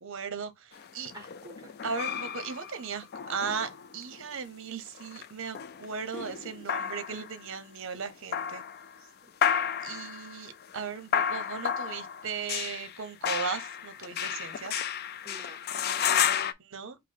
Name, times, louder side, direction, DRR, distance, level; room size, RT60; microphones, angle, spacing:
voice 1, 0.0-1.1 1.8-8.6 9.8-14.8 16.6-17.0, right 6 dB, 60° right, 0.7 m, -37 dB
sound 1, 0.7-4.3 4.9-7.4 8.1-9.0 9.4-16.5, left 8 dB, 45° left, 0.3 m, -32 dB
voice 2, 1.1-1.8 9.0-9.1 9.8-10.0 15.2-16.5, right 1 dB, 20° right, 0.8 m, -51 dB
4.7 x 2.0 x 4.4 m
head